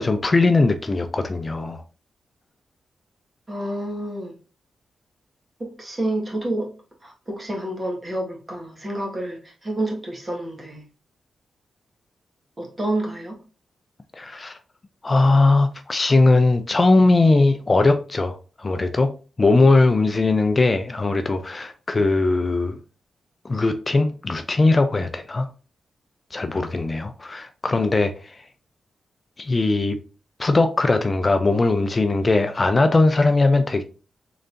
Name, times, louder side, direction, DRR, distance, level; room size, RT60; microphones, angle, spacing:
voice 1, 0.0-1.8 14.1-14.6 15.0-19.1 19.4-22.8 23.4-25.5 26.3-28.4 29.4-30.0 30.4-33.8, left 3 dB, 35° left, 0.5 m, -19 dB
voice 2, 3.5-4.4 5.6-6.7 7.0-10.9 12.6-13.4, right 1 dB, 30° right, 1.6 m, -29 dB
3.9 x 3.2 x 2.6 m
cardioid pair, 60°, 0 cm